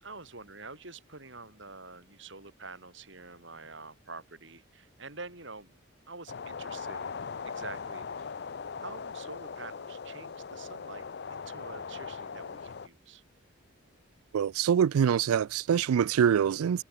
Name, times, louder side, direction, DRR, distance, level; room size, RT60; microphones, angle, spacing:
voice 1, 0.0-5.7 6.1-7.1 7.4-8.3 8.8-11.1 11.3-13.2, right 3 dB, 60° right, 3.8 m, -47 dB
sound 1, 6.3-12.9, left 5 dB, 50° left, 0.5 m, -40 dB
voice 2, 14.3-16.8, right 8 dB, 90° right, 0.4 m, -25 dB
head